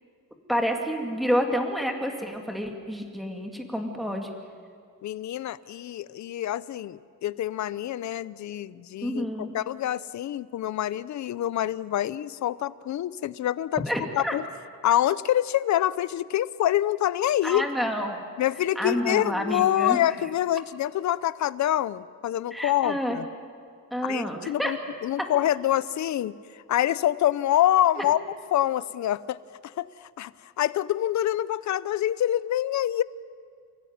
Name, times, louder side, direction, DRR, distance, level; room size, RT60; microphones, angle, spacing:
voice 1, 0.5-4.3 9.0-9.5 13.9-14.3 17.4-18.2 18.8-20.0 22.5-23.2 23.9-24.7 28.0-28.1, equal, ahead, 3 dB, 2.1 m, -29 dB
voice 2, 5.0-13.8 14.2-14.5 14.8-17.7 18.4-23.3 24.0-24.8 25.0-28.2 28.5-33.0, left 12 dB, 55° left, 17 dB, 0.6 m, -26 dB
29.5 x 17.0 x 9.4 m, 2.2 s
cardioid pair, 180°, 33 cm